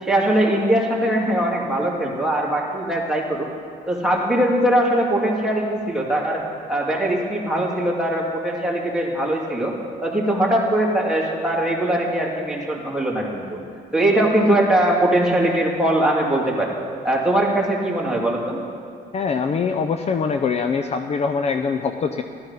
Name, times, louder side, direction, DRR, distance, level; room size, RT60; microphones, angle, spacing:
voice 1, 0.0-3.5 3.9-6.4 6.7-9.7 10.0-13.6 13.9-16.7 17.0-18.6, right 1 dB, 5° right, -4 dB, 2.8 m, -21 dB
voice 2, 19.1-22.2, left 5 dB, 40° left, 7 dB, 0.6 m, -23 dB
14.5 x 12.0 x 5.7 m, 2.3 s
cardioid pair, 110°, 17 cm